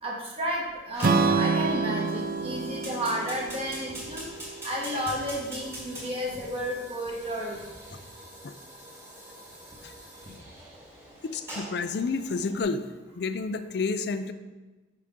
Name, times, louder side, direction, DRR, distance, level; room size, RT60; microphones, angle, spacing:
voice 1, 0.0-4.2 4.6-7.6 10.3-10.4, equal, 30° right, -3 dB, 1.4 m, -32 dB
Fire, 0.9-12.6, right 1 dB, 15° right, 1.7 m, -44 dB
Strum, 1.0-5.2, right 4 dB, 45° right, 0.4 m, -28 dB
voice 2, 11.2-12.8 13.1-14.3, left 4 dB, 55° left, 11 dB, 0.4 m, -30 dB
6.0 x 5.9 x 3.7 m, 1.2 s
head